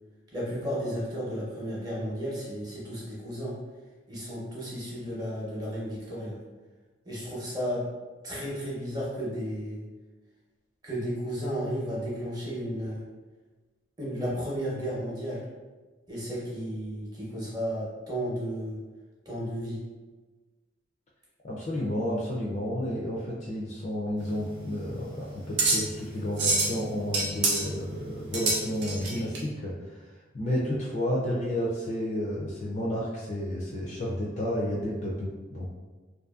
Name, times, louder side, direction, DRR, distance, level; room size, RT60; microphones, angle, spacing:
voice 1, 0.3-3.6 4.1-6.4 7.1-7.8 8.2-9.8 10.8-13.0 14.0-15.4 16.1-18.8 19.3-19.8, equal, 20° right, -6 dB, 0.7 m, -33 dB
voice 2, 21.4-30.1 30.3-35.7, equal, 35° left, -4 dB, 0.3 m, -31 dB
sound 1, 24.2-29.4, right 3 dB, 70° right, 0.6 m, -28 dB
2.5 x 2.5 x 2.3 m, 1.3 s
head